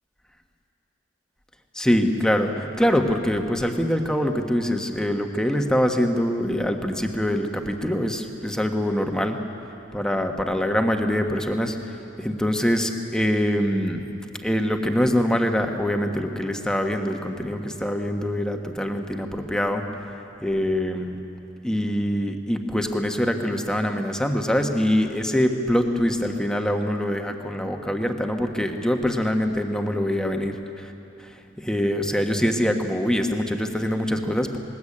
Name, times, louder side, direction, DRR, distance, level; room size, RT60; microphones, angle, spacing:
voice 1, 1.7-9.4 9.9-11.8 12.2-14.0 14.4-19.8 20.4-21.2 21.6-30.9 31.6-34.6, equal, 5° left, 4 dB, 1.4 m, -24 dB
20.0 x 20.0 x 8.7 m, 2.9 s
head